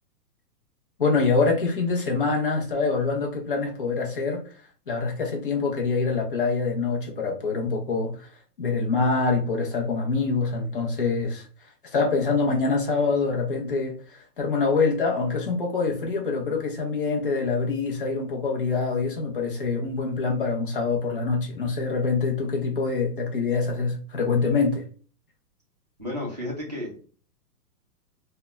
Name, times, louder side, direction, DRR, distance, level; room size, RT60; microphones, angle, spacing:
voice 1, 1.0-4.4 4.9-8.3 8.6-11.5 11.9-24.8, left 4 dB, 35° left, 0.4 m, -25 dB
voice 2, 26.0-27.0, left 1 dB, 30° right, 0.4 m, -32 dB
2.8 x 2.1 x 2.2 m
hypercardioid pair, 175°, 48 cm